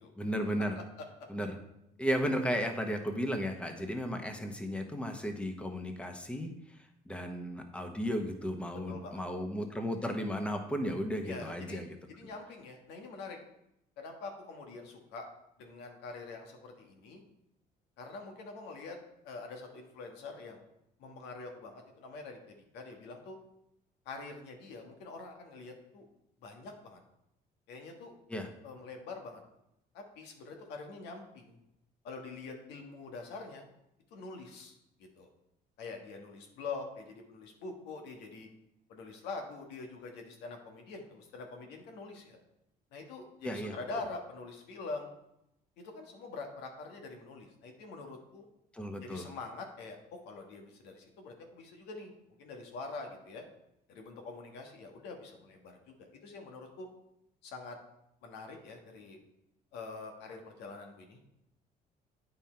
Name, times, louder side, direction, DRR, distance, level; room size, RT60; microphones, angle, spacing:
voice 1, 0.2-0.8 1.3-1.6 2.0-11.9 28.3-28.5 43.4-43.8 48.7-49.3, equal, 5° left, 5 dB, 1.0 m, -34 dB
voice 2, 8.9-9.2 11.2-13.4 14.0-15.2 15.6-17.2 18.0-19.0 19.2-20.6 21.0-23.4 24.0-26.1 26.4-27.0 27.7-28.1 28.6-29.4 29.9-31.6 32.0-33.6 34.1-35.3 35.8-38.5 38.9-42.4 42.9-45.1 45.8-48.4 49.0-52.1 52.4-53.4 53.9-56.9 57.4-57.8 58.2-59.2 59.7-61.2, left 3 dB, 90° left, 3 dB, 1.5 m, -45 dB
9.0 x 5.6 x 4.4 m, 0.83 s
cardioid pair, 110°, 17 cm